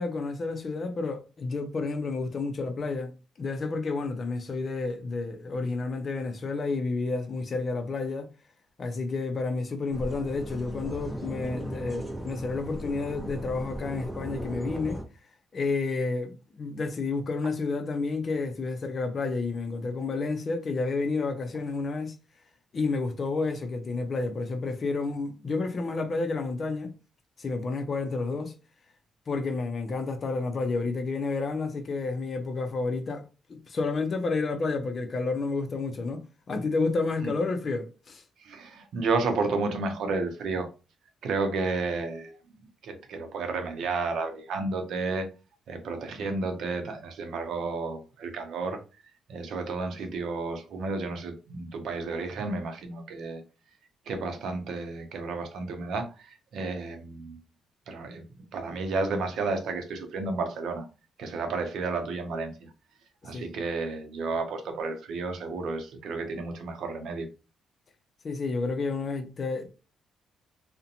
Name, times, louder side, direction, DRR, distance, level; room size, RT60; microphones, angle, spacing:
voice 1, 0.0-3.1 3.4-8.3 8.8-15.0 15.5-22.1 22.7-26.9 27.4-28.5 29.3-38.2 63.2-63.5 68.2-69.7, left 3 dB, 45° left, 0.5 m, -30 dB
sound 1, 9.9-15.0, right 1 dB, ahead, 0.7 m, -37 dB
voice 2, 38.4-40.7 41.2-42.4 42.8-45.3 45.7-48.8 49.3-53.4 54.1-57.4 57.9-58.2 58.5-60.9 61.2-62.7 63.2-67.3, right 3 dB, 70° right, 0.6 m, -32 dB
2.5 x 2.1 x 2.7 m
cardioid pair, 90°, 0 cm